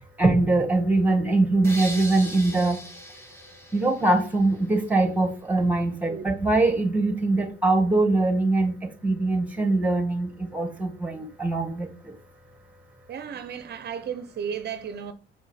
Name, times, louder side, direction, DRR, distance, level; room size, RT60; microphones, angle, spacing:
voice 1, 0.2-2.8 3.7-12.1, right 2 dB, 5° right, 1.8 m, -23 dB
sound 1, 1.6-4.7, equal, 15° left, 2.3 m, -39 dB
voice 2, 13.1-15.1, right 7 dB, 55° right, 0.7 m, -34 dB
6.3 x 4.4 x 5.7 m
cardioid pair, 90°, 20 cm